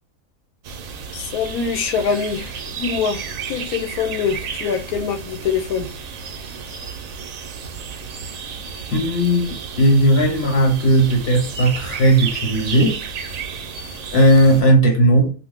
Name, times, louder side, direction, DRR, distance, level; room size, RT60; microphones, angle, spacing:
sound 1, 0.6-14.6, right 6 dB, 75° right, 1.0 m, -32 dB
voice 1, 1.1-5.9, left 6 dB, 90° left, 1.1 m, -24 dB
voice 2, 8.9-9.4 9.8-13.0 14.1-15.3, right 1 dB, 50° left, 1.4 m, -16 dB
2.6 x 2.5 x 3.4 m
omnidirectional pair, 1.5 m